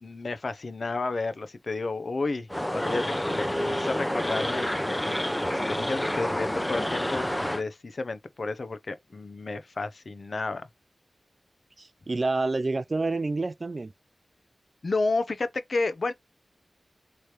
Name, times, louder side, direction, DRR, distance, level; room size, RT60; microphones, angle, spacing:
voice 1, 0.0-5.2 5.5-10.7 14.8-16.1, left 3 dB, 65° left, 0.7 m, -31 dB
sound 1, 2.5-7.6, equal, 15° left, 0.7 m, -28 dB
voice 2, 11.8-13.9, right 3 dB, 50° right, 0.4 m, -28 dB
3.3 x 3.2 x 4.4 m
cardioid pair, 45°, 0 cm